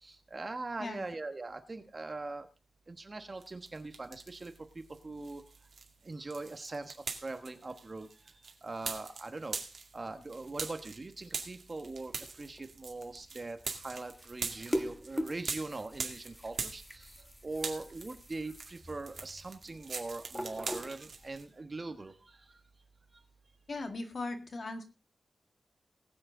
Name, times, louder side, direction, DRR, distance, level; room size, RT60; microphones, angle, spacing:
voice 1, 0.0-2.5 2.9-4.5 5.0-5.4 6.0-8.1 8.6-9.6 9.9-17.1 17.4-22.1, right 3 dB, 30° right, 8 dB, 1.2 m, -41 dB
sound 1, 3.4-4.6 4.9-17.3 17.5-21.4, right 4 dB, 60° right, 2.2 m, -42 dB
sound 2, 11.8-21.4, equal, 5° left, 1.2 m, -43 dB
voice 2, 23.7-24.8, left 2 dB, 45° left, 6 dB, 2.0 m, -38 dB
20.0 x 7.7 x 3.8 m, 0.30 s
wide cardioid pair, 170°, 0 cm